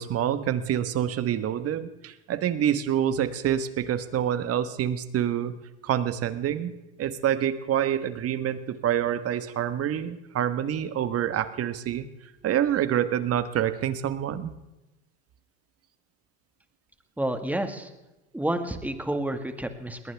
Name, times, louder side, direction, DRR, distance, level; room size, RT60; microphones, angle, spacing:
voice 1, 0.0-5.6 5.8-6.7 7.0-12.1 12.4-14.5, right 10 dB, 40° right, 12 dB, 1.4 m, -27 dB
voice 2, 17.2-17.9 18.3-20.1, right 1 dB, 5° right, 7 dB, 1.8 m, -30 dB
21.5 x 18.5 x 3.5 m, 0.99 s
supercardioid pair, 105°, 36 cm